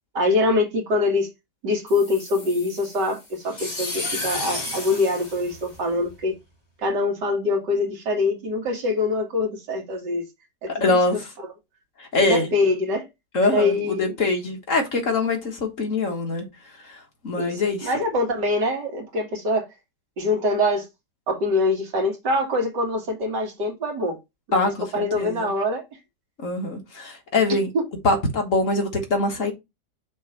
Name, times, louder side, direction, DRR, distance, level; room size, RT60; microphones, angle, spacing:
voice 1, 0.1-1.3 1.6-6.4 6.8-10.2 10.6-11.0 12.2-13.1 13.4-14.1 17.4-19.7 20.2-20.9 21.3-24.2 24.5-24.6 24.9-25.8 27.7-27.8, left 2 dB, 80° right, 2.4 m, -24 dB
sound 1, 1.9-6.2, left 2 dB, 25° left, 2.1 m, -33 dB
voice 2, 10.7-11.3 12.0-12.5 13.3-16.5 16.8-17.9 24.5-25.5 26.4-27.7 28.0-29.5, left 2 dB, 50° left, 1.7 m, -24 dB
6.4 x 3.1 x 5.5 m
omnidirectional pair, 1.8 m